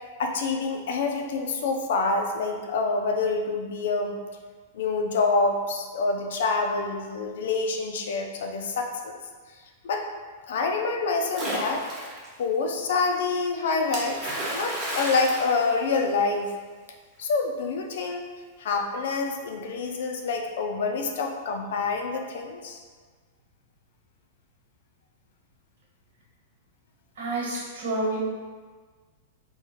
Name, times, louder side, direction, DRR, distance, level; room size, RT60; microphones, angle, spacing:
voice 1, 0.2-4.2 4.7-9.2 9.8-10.1 10.5-11.9 12.4-14.2 14.5-16.5 17.2-18.2 18.6-22.8, left 4 dB, 70° left, 3 dB, 0.5 m, -27 dB
Splash splatter, 11.3-12.3 13.9-16.4, right 1 dB, 25° right, 1.0 m, -32 dB
voice 2, 27.2-28.2, right 2 dB, 85° right, -3 dB, 1.3 m, -29 dB
3.6 x 2.3 x 4.4 m, 1.5 s
supercardioid pair, 160°, 0 cm